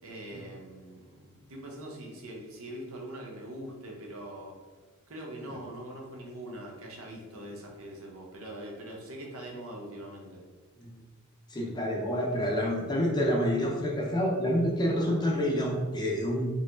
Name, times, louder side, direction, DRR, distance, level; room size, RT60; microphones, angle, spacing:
voice 1, 0.0-4.6 5.1-10.4 15.0-15.2, right 1 dB, 70° right, -1 dB, 0.8 m, -42 dB
voice 2, 11.5-16.5, equal, 20° left, -2 dB, 0.5 m, -28 dB
3.9 x 2.9 x 2.6 m, 1.3 s
head